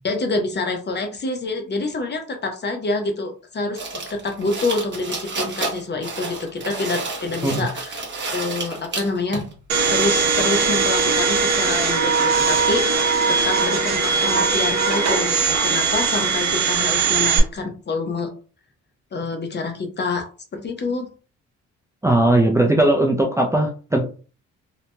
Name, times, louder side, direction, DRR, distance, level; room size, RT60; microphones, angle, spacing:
voice 1, 0.0-8.1 8.3-9.4 9.9-13.0 13.3-18.3 19.1-20.3 20.5-21.1, left 3 dB, 35° left, 5 dB, 0.7 m, -27 dB
sound 1, 3.8-9.5, right 3 dB, 40° right, 1.1 m, -30 dB
Domestic sounds home sounds, 9.7-17.4, right 5 dB, 65° right, 0.9 m, -20 dB
voice 2, 22.0-24.0, right 1 dB, 10° right, 1 dB, 0.4 m, -18 dB
2.8 x 2.7 x 2.2 m, 0.37 s
cardioid pair, 90°, 30 cm